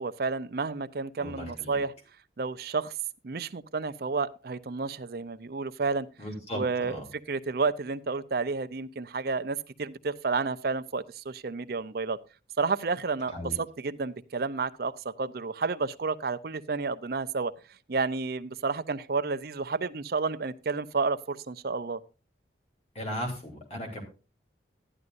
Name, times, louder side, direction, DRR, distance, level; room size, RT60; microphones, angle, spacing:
voice 1, 0.0-1.9 2.4-2.9 3.2-6.1 6.5-12.2 12.6-17.5 17.9-22.0, right 4 dB, 55° right, 0.6 m, -31 dB
voice 2, 1.2-1.8 6.2-6.6 6.9-7.0 13.3-13.5 22.9-24.0, equal, 35° left, 3.1 m, -36 dB
12.0 x 11.0 x 2.6 m
head